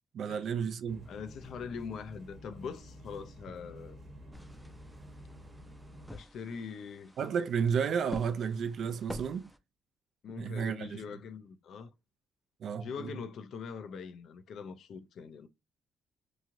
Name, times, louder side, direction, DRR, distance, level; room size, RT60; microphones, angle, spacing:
voice 1, 0.1-1.1 7.2-9.5 10.4-11.0 12.6-13.2, right 7 dB, 65° right, 0.4 m, -32 dB
sound 1, 0.9-6.1, equal, 35° right, 0.9 m, -50 dB
voice 2, 1.1-4.0 6.1-7.1 10.2-11.9 12.8-15.5, left 6 dB, 70° left, 0.4 m, -42 dB
sound 2, 4.3-9.6, equal, ahead, 0.5 m, -48 dB
3.0 x 2.3 x 2.6 m
cardioid pair, 90°, 0 cm